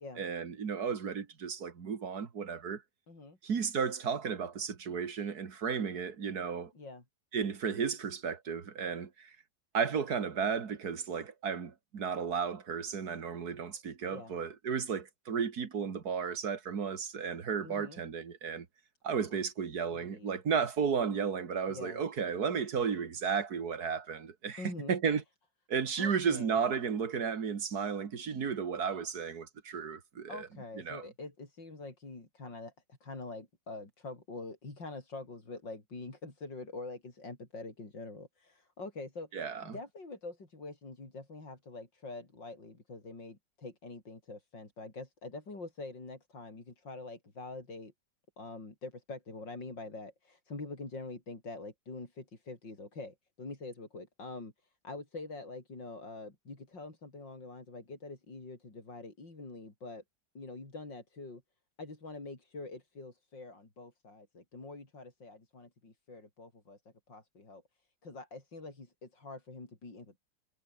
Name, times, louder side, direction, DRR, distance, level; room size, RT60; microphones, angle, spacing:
voice 1, 0.0-2.8 3.4-6.7 7.3-9.4 9.7-18.7 19.0-25.2 25.7-30.5 30.9-31.0 39.3-39.8, right 6 dB, 60° right, 2.3 m, -34 dB
voice 2, 3.1-3.4 6.7-7.0 14.1-14.3 17.6-18.0 19.3-19.4 19.9-20.4 21.7-22.0 24.6-25.0 26.0-26.6 30.3-47.9 48.4-54.5 54.8-60.0 60.3-61.4 61.8-66.8 67.1-67.6 68.0-70.2, left 3 dB, 80° left, 6.2 m, -45 dB
omnidirectional pair, 2.0 m